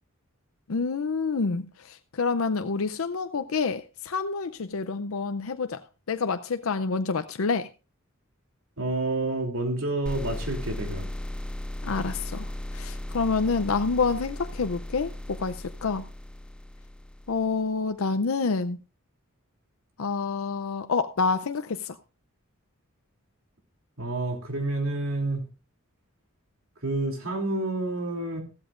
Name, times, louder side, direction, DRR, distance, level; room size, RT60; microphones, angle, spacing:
voice 1, 0.7-5.8 6.1-7.7 11.8-12.5 12.7-16.0 17.3-18.8 20.0-22.0, left 4 dB, 80° left, 9 dB, 0.6 m, -28 dB
voice 2, 8.8-11.1 24.0-25.5 26.8-28.4, right 2 dB, 80° right, 3 dB, 3.1 m, -29 dB
sound 1, 10.1-17.6, left 1 dB, 5° left, 0.5 m, -36 dB
15.0 x 13.0 x 2.5 m, 0.31 s
head